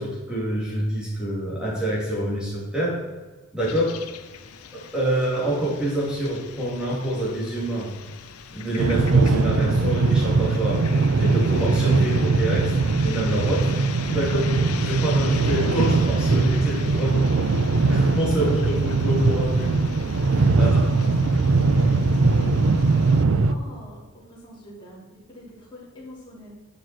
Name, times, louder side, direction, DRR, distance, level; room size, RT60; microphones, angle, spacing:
voice 1, 0.0-3.0 3.5-4.0 4.7-7.9 8.5-10.8 11.2-12.7 13.0-13.7 14.0-17.2 17.9-19.8 20.3-20.8, right 1 dB, 5° right, -6 dB, 3.2 m, -26 dB
sound 1, 3.6-23.2, left 7 dB, 85° left, 0.7 m, -40 dB
sound 2, 8.8-23.5, right 3 dB, 60° right, 0.5 m, -21 dB
voice 2, 21.2-26.5, left 1 dB, 20° left, -8 dB, 3.4 m, -43 dB
10.5 x 6.6 x 4.6 m, 1.3 s
head